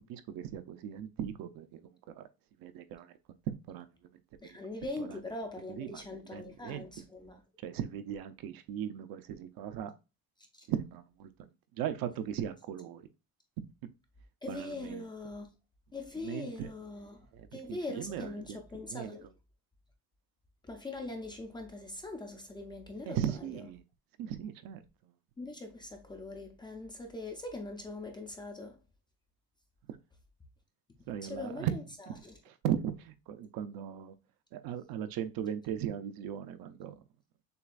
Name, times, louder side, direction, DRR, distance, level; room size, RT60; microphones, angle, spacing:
voice 1, 0.1-1.8 2.2-2.3 2.6-3.1 3.7-3.9 5.1-5.2 5.7-6.8 7.6-9.9 10.7-11.3 11.8-13.0 14.5-15.0 16.2-16.7 17.3-18.6 18.9-19.2 23.1-23.8 24.2-24.8 31.1-31.7 32.5-34.1 34.5-37.0, right 10 dB, 65° right, 0.6 m, -37 dB
voice 2, 4.4-7.4 10.5-10.7 14.4-15.5 15.9-17.2 17.5-19.3 20.6-23.6 25.4-28.7 31.2-31.8 32.2-32.4, left 2 dB, 10° left, 0.4 m, -42 dB
6.7 x 2.3 x 2.5 m
cardioid pair, 170°, 38 cm